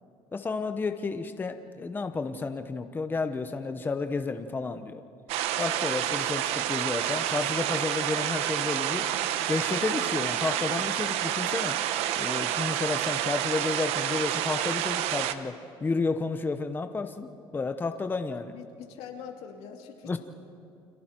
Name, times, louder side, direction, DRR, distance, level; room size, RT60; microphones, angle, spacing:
voice 1, 0.3-5.0 5.6-9.0 9.5-11.8 12.2-15.5 15.8-18.5 20.1-20.2, left 4 dB, 20° left, 8 dB, 0.9 m, -31 dB
sound 1, 5.3-15.3, right 11 dB, 85° right, 1.0 m, -29 dB
voice 2, 18.5-20.2, left 7 dB, 80° left, 2 dB, 2.4 m, -44 dB
30.0 x 23.5 x 4.5 m, 2.4 s
cardioid pair, 125°, 10 cm